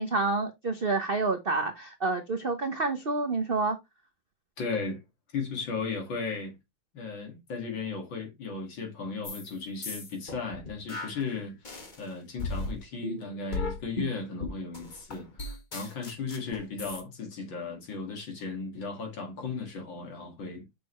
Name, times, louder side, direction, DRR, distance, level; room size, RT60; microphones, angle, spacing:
voice 1, 0.0-3.8, right 3 dB, 75° right, 0.5 m, -28 dB
voice 2, 4.6-5.0 5.3-6.6 6.9-11.6 12.0-20.7, left 4 dB, 65° left, 2.7 m, -36 dB
sound 1, 9.2-9.5 9.8-12.0 12.4-17.0, left 2 dB, 30° left, 1.0 m, -36 dB
6.3 x 5.9 x 3.0 m
omnidirectional pair, 2.3 m